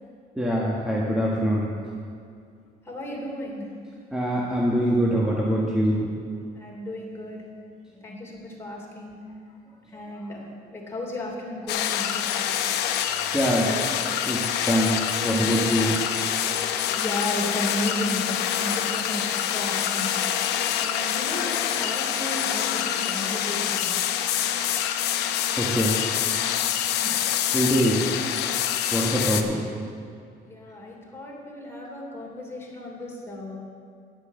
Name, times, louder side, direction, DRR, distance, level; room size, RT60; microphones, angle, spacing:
voice 1, 0.3-1.6 4.1-6.1 13.3-13.7 14.3-15.0 15.2-16.0 25.6-25.9 27.5-28.0 28.9-29.6, equal, 5° right, -5 dB, 1.7 m, -23 dB
voice 2, 2.8-3.7 6.5-7.4 8.0-9.2 9.9-12.6 16.7-18.2 18.5-20.1 20.7-23.9 30.4-33.6, left 1 dB, 15° left, -3 dB, 2.9 m, -34 dB
sound 1, 11.7-29.4, left 10 dB, 85° left, 0.7 m, -26 dB
10.0 x 8.1 x 6.8 m, 2.3 s
cardioid pair, 110°, 17 cm